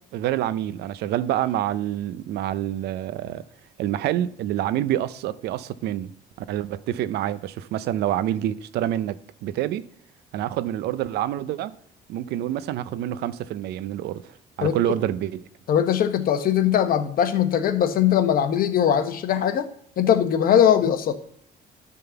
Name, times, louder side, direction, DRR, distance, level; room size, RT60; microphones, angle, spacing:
voice 1, 0.1-3.4 3.8-6.1 6.4-9.2 9.4-9.9 10.3-11.7 12.1-14.3 14.6-15.4, right 12 dB, 75° right, 0.6 m, -27 dB
voice 2, 15.7-19.7 20.0-21.2, left 9 dB, 60° left, 1.1 m, -20 dB
11.0 x 3.9 x 6.9 m
cardioid pair, 110°, 17 cm